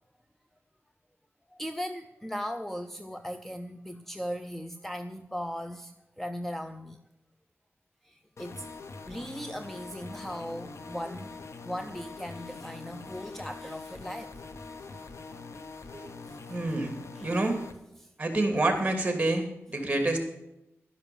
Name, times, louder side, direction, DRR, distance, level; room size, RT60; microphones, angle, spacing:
voice 1, 1.5-7.0 8.0-8.7 9.1-11.3 11.6-14.3 14.8-15.1 16.3-16.4 17.2-17.3 18.0-18.1, equal, 5° left, 9 dB, 0.6 m, -38 dB
sound 1, 8.4-17.7, left 3 dB, 75° left, 1.1 m, -44 dB
voice 2, 16.5-17.6 18.2-20.2, right 2 dB, 25° right, 6 dB, 2.7 m, -28 dB
12.0 x 10.5 x 7.1 m, 0.90 s
wide cardioid pair, 95°, 5 cm